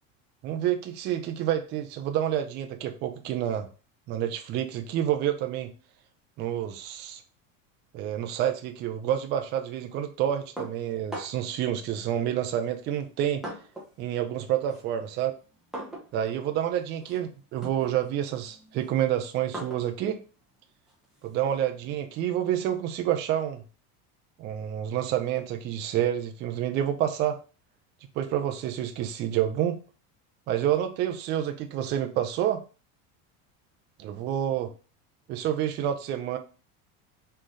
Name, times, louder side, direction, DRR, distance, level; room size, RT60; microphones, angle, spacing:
voice 1, 0.4-3.7 4.1-5.7 6.4-7.2 7.9-13.4 14.0-15.3 16.1-20.2 21.2-23.6 24.4-27.4 28.2-29.8 30.5-32.6 34.0-34.7 35.3-36.4, right 11 dB, 30° right, 6 dB, 0.4 m, -28 dB
sound 1, 10.6-11.6 12.5-14.0 14.3-21.6, right 1 dB, ahead, 0.8 m, -43 dB
3.8 x 3.2 x 3.9 m, 0.35 s
cardioid pair, 165°, 39 cm